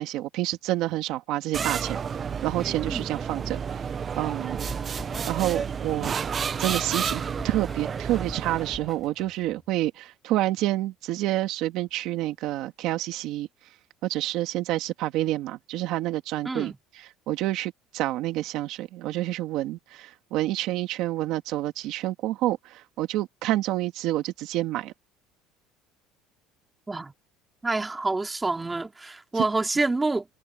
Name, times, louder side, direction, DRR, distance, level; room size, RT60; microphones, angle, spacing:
voice 1, 0.0-2.0 2.4-3.6 4.1-4.6 5.2-6.1 6.6-13.5 14.0-16.7 17.0-24.9 29.4-29.5, right 15 dB, 60° right, 2.2 m, -28 dB
sound 1, 1.5-8.9, right 6 dB, 25° right, 0.8 m, -31 dB
sound 2, 4.7-9.6, left 3 dB, 15° left, 5.6 m, -46 dB
voice 2, 16.4-16.8 26.9-27.1 27.6-30.2, right 3 dB, 10° right, 2.7 m, -27 dB
cardioid pair, 150°, 0 cm